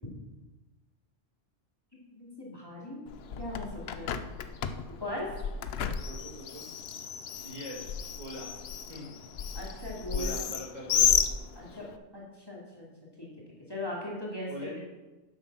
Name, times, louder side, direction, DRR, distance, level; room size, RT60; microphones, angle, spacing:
voice 1, 2.1-3.0 3.4-4.2 4.9-5.3 9.5-10.3 11.6-11.9 12.1-12.9 13.2-13.3 13.7-14.5, left 1 dB, 20° left, -4 dB, 2.8 m, -39 dB
Bird, 3.1-12.0, left 8 dB, 60° left, 0.8 m, -32 dB
voice 2, 6.0-6.6 7.4-8.5 8.9-9.1 10.1-11.1 14.5-14.8, equal, 35° right, -5 dB, 2.9 m, -42 dB
10.5 x 8.1 x 5.8 m, 1.1 s
omnidirectional pair, 1.3 m